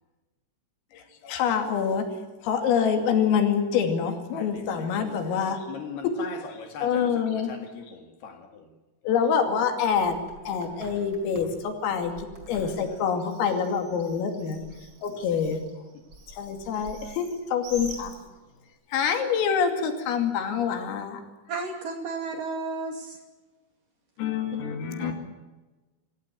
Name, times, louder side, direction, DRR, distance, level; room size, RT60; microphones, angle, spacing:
voice 1, 0.9-2.0 2.4-5.7 6.0-6.3 6.8-7.6 9.1-10.1 10.4-14.6 15.0-15.6 16.3-18.1 18.9-21.2 24.2-25.1, left 7 dB, 80° left, 5.2 m, -26 dB
voice 2, 4.3-8.7 12.6-12.8 14.2-14.3 15.1-15.5, left 6 dB, 60° left, 3.5 m, -41 dB
Bird, 9.8-18.7, right 2 dB, 25° right, 4.9 m, -47 dB
voice 3, 21.5-23.2 25.0-25.1, right 3 dB, 50° right, 3.4 m, -33 dB
26.0 x 16.0 x 9.4 m
omnidirectional pair, 5.9 m